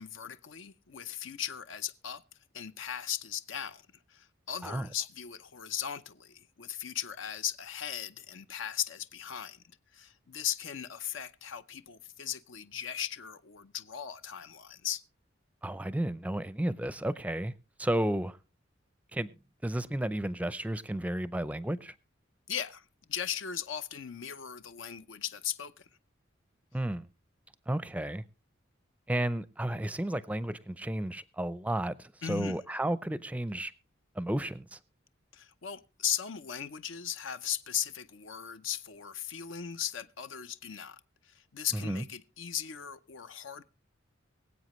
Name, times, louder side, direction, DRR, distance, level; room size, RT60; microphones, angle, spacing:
voice 1, 0.0-2.2 2.5-3.8 4.1-9.6 9.9-15.0 22.5-25.8 32.2-32.6 35.3-43.6, left 9 dB, 70° left, 0.6 m, -37 dB
voice 2, 15.6-17.5 17.8-18.4 19.1-19.3 19.6-21.9 26.7-27.1 27.7-28.2 29.1-33.7 34.2-34.8 41.7-42.0, right 1 dB, 5° right, 0.5 m, -32 dB
23.5 x 8.1 x 3.1 m
head